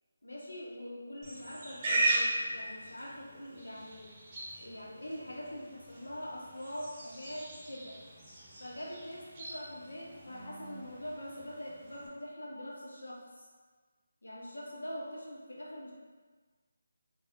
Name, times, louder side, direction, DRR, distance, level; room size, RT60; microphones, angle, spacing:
voice 1, 0.2-4.1 4.6-8.0 8.6-13.5 14.2-15.9, equal, 80° left, -4 dB, 0.9 m, -43 dB
Livestock farm animals working animals, 1.2-12.1, right 2 dB, 25° right, 0.9 m, -38 dB
4.2 x 2.3 x 2.5 m, 1.4 s
figure-of-eight pair, 155°, 0 cm